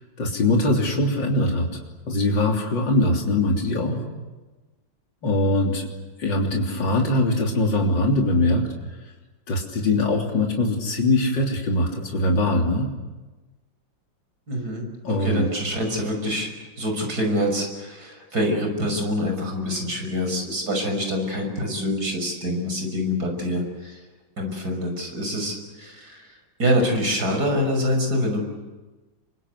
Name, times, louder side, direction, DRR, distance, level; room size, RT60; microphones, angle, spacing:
voice 1, 0.2-1.8 2.1-4.0 5.2-5.9 6.2-8.7 9.5-12.9 15.0-15.5, left 2 dB, 70° left, 0 dB, 4.0 m, -22 dB
voice 2, 14.5-16.5 16.8-24.0 24.4-26.3 26.6-28.4, equal, 50° right, 3 dB, 6.5 m, -25 dB
28.0 x 24.0 x 8.2 m, 1.2 s
omnidirectional pair, 2.1 m